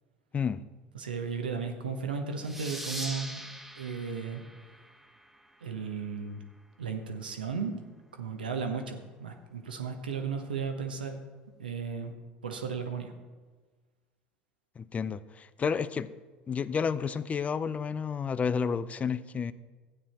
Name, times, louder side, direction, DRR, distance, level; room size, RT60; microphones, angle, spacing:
voice 1, 0.9-3.3 3.8-4.4 5.6-6.4 6.8-7.8 8.1-11.2 11.6-12.1 12.4-13.1, right 5 dB, 85° right, 5 dB, 1.1 m, -35 dB
sound 1, 2.4-5.7, right 1 dB, 5° right, 1.0 m, -42 dB
voice 2, 14.8-16.1 16.5-19.5, left 6 dB, 30° left, 16 dB, 0.5 m, -31 dB
13.0 x 8.8 x 4.3 m, 1.4 s
hypercardioid pair, 70°, 5 cm